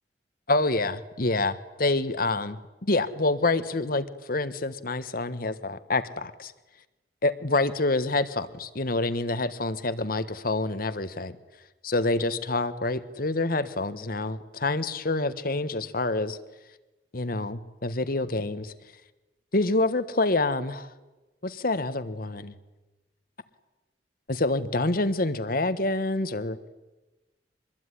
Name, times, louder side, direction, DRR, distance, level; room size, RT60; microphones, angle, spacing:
voice 1, 0.5-6.5 7.2-11.4 11.8-16.4 17.1-18.7 19.5-20.9 21.4-22.5 24.3-26.6, left 2 dB, 55° left, 12 dB, 1.4 m, -27 dB
25.0 x 21.0 x 9.9 m, 1.1 s
head